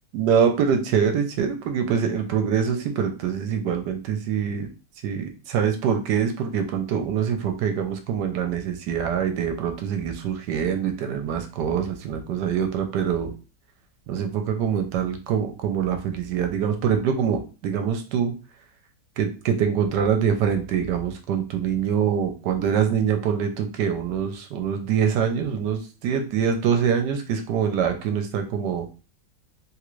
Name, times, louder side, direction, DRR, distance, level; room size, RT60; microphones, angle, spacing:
voice 1, 0.1-4.7 5.0-13.3 14.1-18.3 19.2-28.9, right 7 dB, 80° right, 5 dB, 1.2 m, -24 dB
3.4 x 2.5 x 3.0 m, 0.32 s
omnidirectional pair, 1.9 m